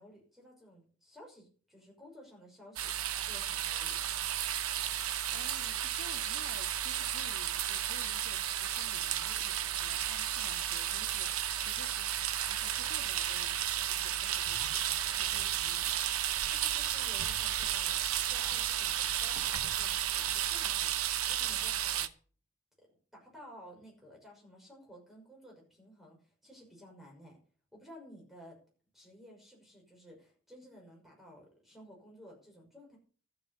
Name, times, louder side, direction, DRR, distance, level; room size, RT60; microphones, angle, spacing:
voice 1, 0.0-2.9 3.2-4.0 16.4-22.1 22.8-27.4 27.7-28.6 28.9-33.0, equal, ahead, 5.9 m, -55 dB
sound 1, 2.8-22.1, right 11 dB, 90° right, 0.9 m, -33 dB
voice 2, 4.8-14.9 15.1-16.0 21.6-21.7, left 2 dB, 80° left, 1.8 m, -54 dB
12.5 x 8.6 x 6.7 m
head